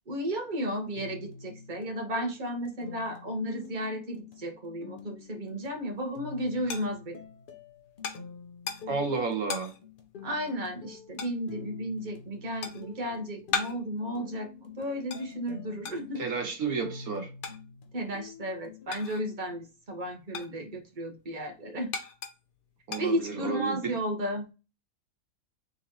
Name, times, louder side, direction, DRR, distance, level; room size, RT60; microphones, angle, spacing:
voice 1, 0.1-7.2 10.2-16.2 17.9-21.9 23.0-24.5, equal, 35° right, 1.2 m, -33 dB
sound 1, 1.0-18.9, left 5 dB, 45° left, 0.7 m, -47 dB
sound 2, 5.7-19.5 19.8-23.7, left 5 dB, 75° left, 1.3 m, -40 dB
voice 2, 8.9-9.7 16.2-17.3 22.9-23.9, right 4 dB, 75° right, 1.6 m, -31 dB
3.9 x 3.7 x 3.0 m
omnidirectional pair, 1.5 m